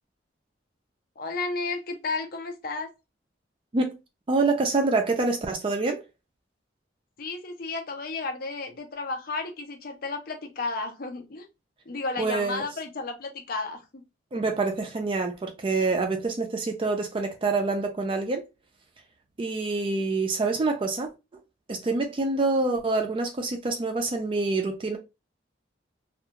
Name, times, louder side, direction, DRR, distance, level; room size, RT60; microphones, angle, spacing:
voice 1, 1.2-2.9 7.2-11.5 11.9-14.0, left 3 dB, 50° left, 0.6 m, -33 dB
voice 2, 4.3-6.0 12.2-12.6 14.3-18.4 19.4-21.1 21.7-25.0, right 3 dB, 30° right, 0.4 m, -26 dB
2.4 x 2.3 x 2.8 m
head